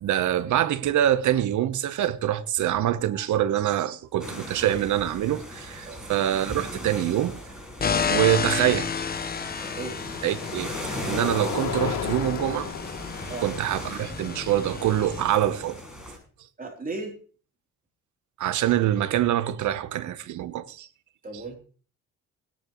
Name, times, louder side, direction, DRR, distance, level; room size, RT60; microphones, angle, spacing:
voice 1, 0.0-7.4 8.1-9.0 10.2-10.7 11.0-12.7 13.4-15.8 18.4-20.9 21.3-21.4, right 12 dB, 75° right, 1.0 m, -25 dB
sound 1, 2.1-2.3 2.6-3.0 4.8-4.9 7.9-16.0, left 8 dB, 70° left, 2.9 m, -36 dB
sound 2, 4.2-16.2, equal, ahead, 6.1 m, -39 dB
sound 3, 7.8-15.2, left 6 dB, 30° left, 1.0 m, -31 dB
voice 2, 16.6-17.1 21.2-21.6, right 3 dB, 30° right, 3.4 m, -35 dB
18.0 x 10.0 x 3.1 m
cardioid pair, 90°, 30 cm